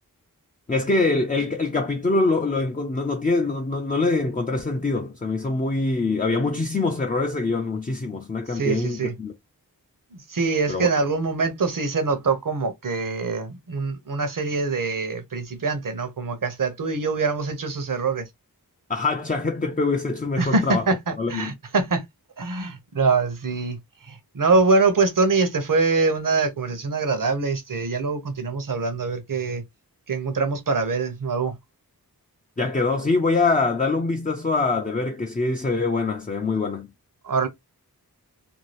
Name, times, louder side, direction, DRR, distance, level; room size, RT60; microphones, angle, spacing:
voice 1, 0.7-9.3 10.7-10.9 18.9-20.8 21.2-21.5 32.6-36.9, left 3 dB, 20° left, 0.4 m, -24 dB
voice 2, 8.5-9.1 10.1-18.3 20.4-22.0 22.4-23.8 24.0-29.6 30.1-31.6 37.2-37.5, right 4 dB, 60° right, 0.8 m, -24 dB
2.7 x 2.2 x 3.1 m
wide cardioid pair, 55°, 37 cm